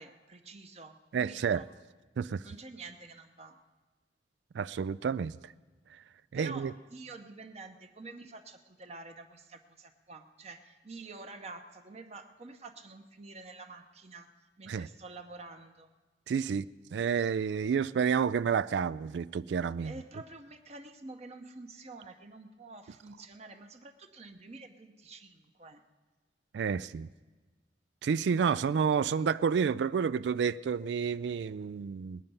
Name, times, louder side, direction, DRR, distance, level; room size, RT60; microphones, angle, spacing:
voice 1, 0.0-1.7 2.4-3.6 6.3-15.9 19.8-25.8, right 3 dB, 35° right, 0.9 m, -48 dB
voice 2, 1.1-1.6 2.2-2.4 4.5-5.4 6.3-6.7 14.7-14.9 16.3-16.7 16.9-19.9 26.5-27.1 28.0-32.2, right 6 dB, 80° right, 0.3 m, -29 dB
20.5 x 8.9 x 5.5 m
head